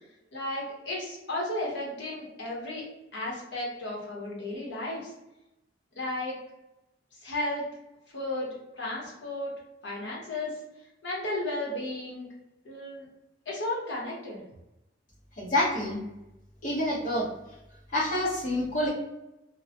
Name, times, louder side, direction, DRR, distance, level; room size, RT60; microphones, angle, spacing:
voice 1, 0.3-2.8 3.1-5.1 5.9-6.3 7.2-7.6 8.1-8.5 8.8-9.5 9.8-10.6 11.0-12.3 12.6-13.1 13.5-14.4, left 1 dB, 75° left, -4 dB, 1.0 m, -34 dB
voice 2, 15.4-16.0 16.6-17.3 17.9-18.9, left 1 dB, 45° left, -5 dB, 0.9 m, -27 dB
2.2 x 2.1 x 2.8 m, 0.92 s
head